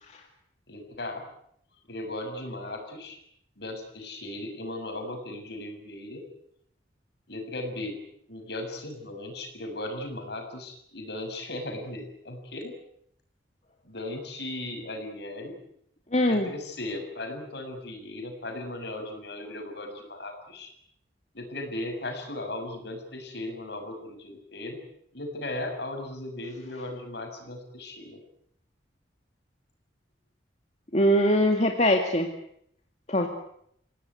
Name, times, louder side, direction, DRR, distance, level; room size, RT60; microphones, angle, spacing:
voice 1, 0.7-1.3 1.9-3.2 3.6-6.3 7.3-8.0 8.3-12.7 13.8-15.6 16.3-20.7 21.3-24.8 25.1-28.2, left 1 dB, 60° left, 4 dB, 6.9 m, -37 dB
voice 2, 16.1-16.5 30.9-32.3 33.1-33.3, equal, 35° left, 3 dB, 2.2 m, -22 dB
28.5 x 17.5 x 9.5 m, 0.72 s
head